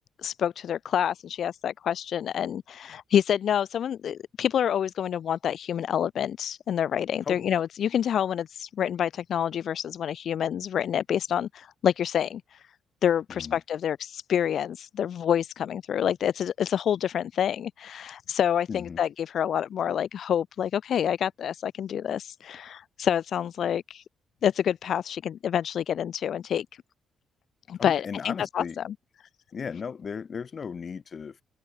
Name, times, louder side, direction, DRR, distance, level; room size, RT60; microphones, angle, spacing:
voice 1, 0.2-12.7 13.0-24.0 24.4-26.7 27.7-28.9, left 9 dB, 65° left, 1.9 m, -27 dB
voice 2, 18.7-19.0 27.8-28.8 29.5-31.4, left 6 dB, 45° left, 3.5 m, -36 dB
open air
cardioid pair, 90°, 0 cm